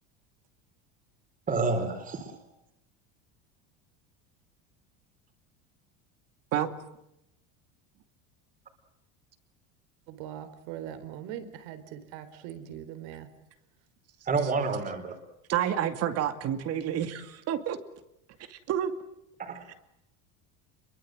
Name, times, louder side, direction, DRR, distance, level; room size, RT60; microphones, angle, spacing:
voice 1, 1.5-2.3 14.3-15.2 19.4-19.6, right 4 dB, 20° right, 5 dB, 4.1 m, -29 dB
voice 2, 10.1-13.3, right 10 dB, 65° right, 11 dB, 4.1 m, -41 dB
voice 3, 15.5-17.8 18.5-18.9 19.7-19.8, right 10 dB, 40° right, 9 dB, 2.4 m, -29 dB
29.0 x 23.0 x 7.8 m, 0.83 s
cardioid pair, 160°, 37 cm